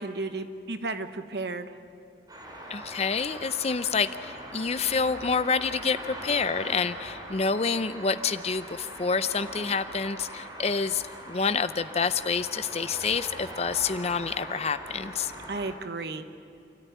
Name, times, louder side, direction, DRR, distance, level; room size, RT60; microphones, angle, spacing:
voice 1, 0.0-1.8 15.5-16.2, right 3 dB, 60° right, 9 dB, 1.1 m, -33 dB
sound 1, 2.3-15.7, right 1 dB, 20° right, 4.0 m, -41 dB
voice 2, 2.7-15.3, left 5 dB, 35° left, 13 dB, 0.5 m, -28 dB
28.5 x 14.0 x 9.3 m, 2.4 s
head